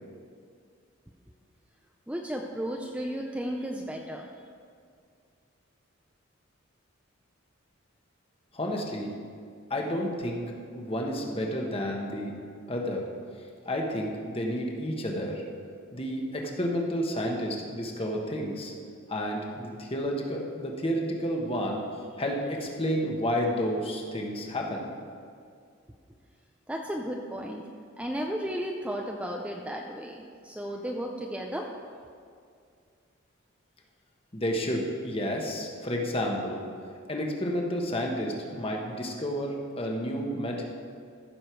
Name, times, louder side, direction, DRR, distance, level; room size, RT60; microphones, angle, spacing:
voice 1, 2.1-4.3 26.7-27.6 28.0-31.7, equal, 5° right, 1 dB, 0.5 m, -34 dB
voice 2, 8.5-9.1 9.7-10.4 10.7-12.3 12.7-13.0 13.6-15.4 15.9-18.7 19.1-21.8 22.2-24.9 34.3-36.6 37.1-40.6, equal, 25° left, 0 dB, 1.2 m, -30 dB
14.5 x 6.7 x 4.6 m, 2.3 s
head